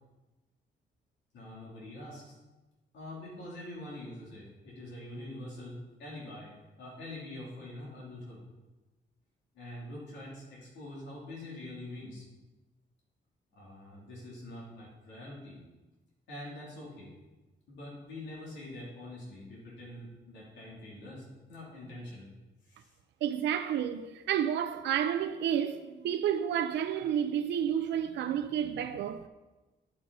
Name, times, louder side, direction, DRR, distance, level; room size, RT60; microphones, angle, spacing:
voice 1, 1.3-2.4 2.9-6.5 6.8-8.4 9.5-12.3 13.5-15.6 16.3-17.1 17.7-22.3 22.6-22.9, left 1 dB, 90° left, 3.1 m, -45 dB
voice 2, 23.2-29.3, right 9 dB, 85° right, 0.5 m, -30 dB
10.5 x 6.3 x 4.1 m
cardioid pair, 100°, 18 cm